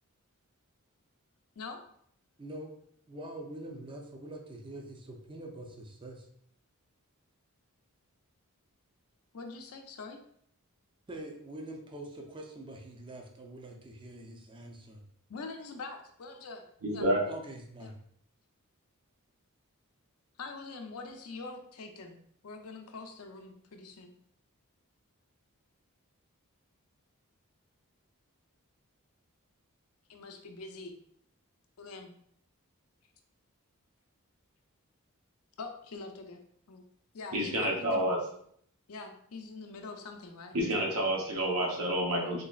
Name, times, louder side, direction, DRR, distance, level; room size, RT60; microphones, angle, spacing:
voice 1, 2.4-2.7 3.1-6.3 11.1-15.0 17.3-17.9, right 1 dB, 25° right, 3 dB, 0.5 m, -44 dB
voice 2, 9.3-10.2 15.3-16.7 16.9-17.1 17.8-17.9 20.4-22.2 22.4-24.1 30.1-30.9 31.8-32.1 35.6-36.4 36.7-36.8 37.1-38.1 38.9-40.6, left 3 dB, 75° left, 5 dB, 0.5 m, -44 dB
voice 3, 16.8-17.2 37.3-38.2 40.5-42.4, right 1 dB, 80° right, 0 dB, 0.9 m, -29 dB
3.9 x 3.0 x 2.4 m, 0.66 s
head